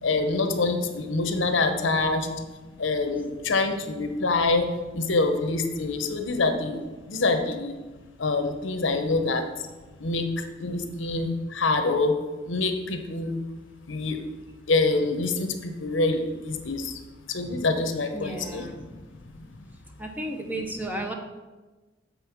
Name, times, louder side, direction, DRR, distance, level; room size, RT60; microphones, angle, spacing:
voice 1, 0.0-2.4 2.8-6.8 7.1-7.8 8.2-9.7 10.0-12.2 12.4-13.4 13.9-14.2 14.7-17.0 17.3-19.1 19.4-19.6, left 3 dB, 75° left, 6 dB, 0.9 m, -26 dB
voice 2, 18.1-18.8 20.0-21.1, right 1 dB, 10° right, 2 dB, 0.7 m, -33 dB
7.0 x 5.4 x 6.0 m, 1.2 s
head